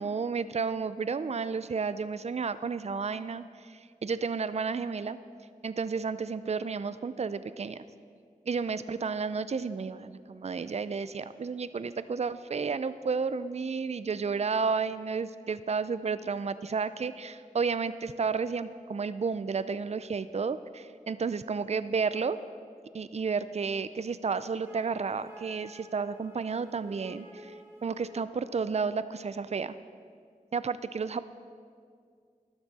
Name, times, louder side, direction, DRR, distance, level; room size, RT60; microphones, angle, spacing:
voice 1, 0.0-5.2 5.6-7.8 8.5-22.4 22.9-27.5 27.8-29.8 30.5-31.2, right 5 dB, 50° right, 14 dB, 0.4 m, -32 dB
Wind instrument woodwind instrument, 24.6-28.3, equal, 15° right, 3.5 m, -49 dB
12.5 x 12.0 x 4.1 m, 2.2 s
wide cardioid pair, 45°, 15 cm